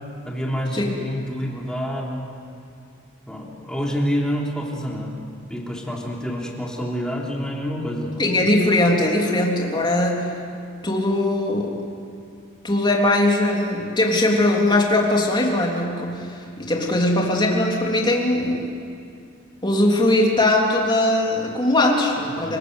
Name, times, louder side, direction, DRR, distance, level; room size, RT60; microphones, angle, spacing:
voice 1, 0.2-2.3 3.3-5.2 5.5-8.3 22.4-22.6, equal, 5° left, -2 dB, 3.4 m, -27 dB
voice 2, 8.2-10.3 10.8-11.8 12.6-18.7 19.6-22.6, left 1 dB, 20° left, -1 dB, 3.3 m, -20 dB
28.5 x 19.5 x 8.2 m, 2.4 s
head